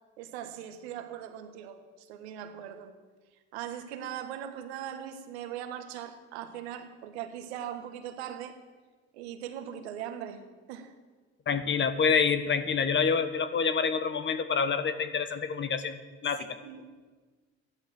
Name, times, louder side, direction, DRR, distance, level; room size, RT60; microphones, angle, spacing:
voice 1, 0.2-2.9 3.5-8.6 9.1-10.4 10.7-10.9 16.6-17.1, right 10 dB, 90° right, 1.6 m, -40 dB
voice 2, 11.5-16.6, left 6 dB, 35° left, 1.3 m, -27 dB
14.0 x 11.5 x 7.6 m
supercardioid pair, 90°, 31 cm